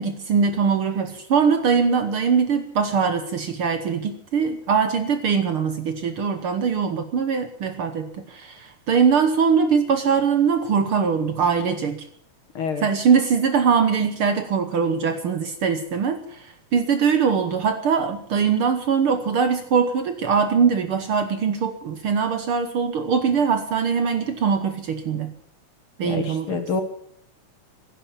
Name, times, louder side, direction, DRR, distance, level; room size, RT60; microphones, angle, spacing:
voice 1, 0.0-12.0 12.8-16.4 16.7-25.3 26.0-26.6, right 6 dB, 60° right, 8 dB, 1.6 m, -22 dB
voice 2, 12.6-12.9 26.0-26.8, left 4 dB, 55° left, 7 dB, 2.0 m, -27 dB
15.5 x 11.5 x 7.2 m, 0.68 s
omnidirectional pair, 3.3 m